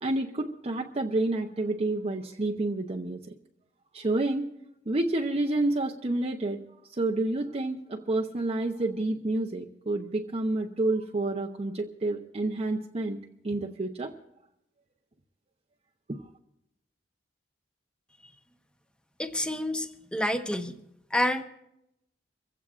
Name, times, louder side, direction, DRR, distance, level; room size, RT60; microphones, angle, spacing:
voice 1, 0.0-3.2 3.9-4.5 4.9-6.6 6.9-13.2 13.4-14.1 16.1-16.2, right 2 dB, 35° right, 1 dB, 0.7 m, -29 dB
voice 2, 19.2-20.7 21.1-21.4, left 1 dB, 5° left, 7 dB, 0.8 m, -28 dB
25.0 x 16.0 x 2.5 m, 0.84 s
head